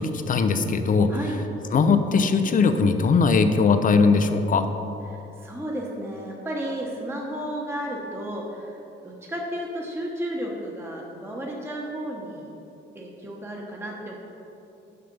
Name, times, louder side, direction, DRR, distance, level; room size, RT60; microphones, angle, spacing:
voice 1, 0.0-1.1 1.7-4.7, left 4 dB, 45° left, 9 dB, 0.6 m, -20 dB
voice 2, 5.1-8.8 9.0-12.5 12.9-14.2, equal, 10° right, -3 dB, 1.1 m, -33 dB
6.8 x 5.8 x 5.3 m, 2.9 s
cardioid pair, 90°, 20 cm